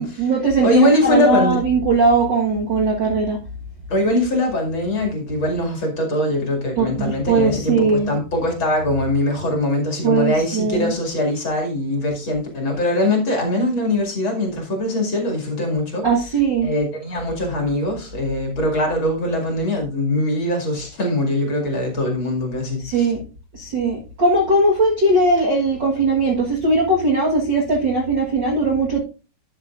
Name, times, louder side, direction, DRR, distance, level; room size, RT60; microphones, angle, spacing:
voice 1, 0.0-3.4 6.8-8.1 10.0-10.9 16.0-16.7 22.8-23.2 23.5-29.0, right 3 dB, 65° right, 1.1 m, -19 dB
voice 2, 0.6-1.6 3.9-16.1 16.6-23.1, left 1 dB, 35° left, 2.6 m, -22 dB
12.0 x 8.6 x 2.5 m
omnidirectional pair, 4.5 m